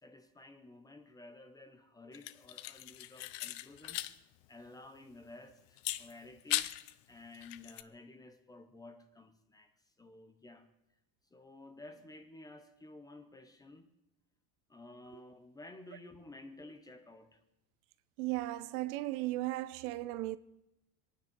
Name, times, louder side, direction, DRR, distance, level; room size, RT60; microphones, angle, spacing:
voice 1, 0.0-4.1 4.5-6.7 7.1-9.7 10.0-10.7 11.3-13.9 14.7-17.4, left 2 dB, 10° left, 0.6 m, -53 dB
sound 1, 2.1-4.2 4.4-4.5 5.8-6.9 7.3-7.8, left 16 dB, 60° left, 0.7 m, -38 dB
voice 2, 18.2-20.4, right 17 dB, 85° right, 0.9 m, -36 dB
26.0 x 9.6 x 5.3 m
cardioid pair, 180°, 42 cm